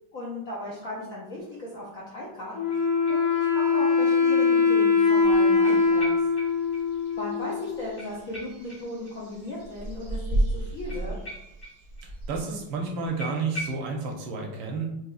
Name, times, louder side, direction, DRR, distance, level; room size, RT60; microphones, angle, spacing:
voice 1, 0.1-6.1 7.2-11.1, left 1 dB, 65° left, -5 dB, 0.8 m, -37 dB
Wind instrument woodwind instrument, 2.5-8.0, left 4 dB, 85° left, 1.8 m, -22 dB
sound 1, 2.7-3.8 4.1-4.2 5.6-6.8 7.1-7.2 7.4-7.5 8.0-9.5 10.9-12.1 12.3-12.4 12.7-12.8 13.2-13.9, equal, 10° left, 0.7 m, -41 dB
sound 2, 5.2-13.2, right 1 dB, 45° right, 0.7 m, -35 dB
voice 2, 12.0-14.9, right 4 dB, 75° right, 1 dB, 1.3 m, -31 dB
4.8 x 2.7 x 2.3 m, 0.86 s
omnidirectional pair, 2.2 m